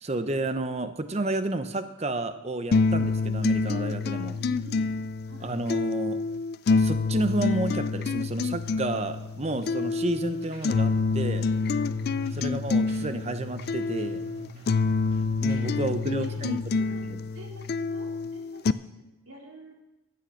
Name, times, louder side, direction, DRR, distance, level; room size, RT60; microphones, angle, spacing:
voice 1, 0.0-4.4 5.4-6.2 6.8-11.5 12.3-14.2 15.4-16.6 17.0-17.2, right 2 dB, 30° right, 10 dB, 0.7 m, -31 dB
sound 1, 2.7-18.7, left 4 dB, 45° left, 0.3 m, -27 dB
voice 2, 4.4-4.9 5.3-5.5 16.2-17.0 17.3-18.9 19.2-19.8, right 1 dB, 80° right, -1 dB, 3.1 m, -47 dB
sound 2, 10.1-16.5, right 3 dB, 45° right, 2.9 m, -46 dB
13.0 x 8.6 x 6.4 m, 0.98 s
head